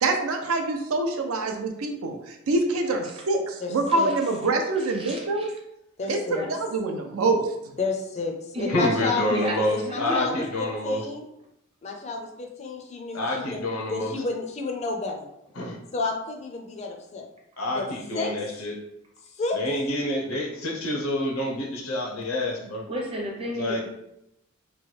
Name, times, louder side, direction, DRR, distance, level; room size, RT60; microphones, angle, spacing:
voice 1, 0.0-5.5 6.1-6.2 6.5-7.5, right 3 dB, 85° right, 4 dB, 0.5 m, -25 dB
voice 2, 3.6-4.1 6.0-6.4 7.8-9.4 9.7-11.2 11.8-15.3 15.9-17.3 17.7-18.3 19.3-19.6, left 3 dB, 30° left, 2 dB, 0.4 m, -31 dB
voice 3, 4.8-5.5 6.3-6.5 8.5-10.5 22.9-23.8, equal, 25° right, -1 dB, 0.6 m, -33 dB
voice 4, 8.7-11.0 13.1-14.1 15.6-15.7 17.6-17.8 18.1-18.7 19.6-22.8 23.6-23.8, left 1 dB, 80° left, 1 dB, 0.6 m, -27 dB
3.0 x 2.2 x 3.2 m, 0.83 s
head